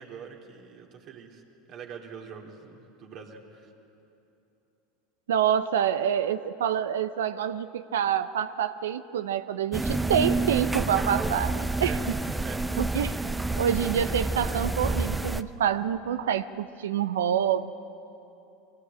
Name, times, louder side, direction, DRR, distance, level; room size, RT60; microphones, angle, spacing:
voice 1, 0.0-1.4 1.7-3.7 11.8-12.0 12.4-12.6, right 7 dB, 50° right, 0 dB, 3.2 m, -43 dB
voice 2, 5.3-11.9 12.8-13.1 13.6-17.7, right 9 dB, 80° right, 12 dB, 0.7 m, -27 dB
sound 1, 9.7-15.4, right 2 dB, 10° right, 0.7 m, -28 dB
23.0 x 17.5 x 8.9 m, 2.9 s
hypercardioid pair, 85°, 0 cm